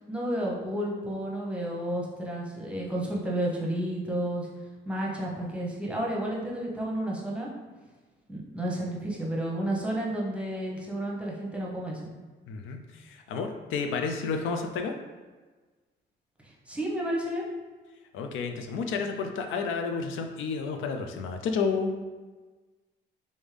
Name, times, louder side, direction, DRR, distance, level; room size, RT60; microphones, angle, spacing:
voice 1, 0.1-4.5 4.9-7.5 8.3-12.1 16.7-17.5, right 1 dB, 5° right, -3 dB, 0.8 m, -31 dB
voice 2, 12.5-14.9 18.1-21.9, left 5 dB, 80° left, 4 dB, 0.4 m, -31 dB
3.5 x 2.6 x 3.2 m, 1.3 s
cardioid pair, 90°, 20 cm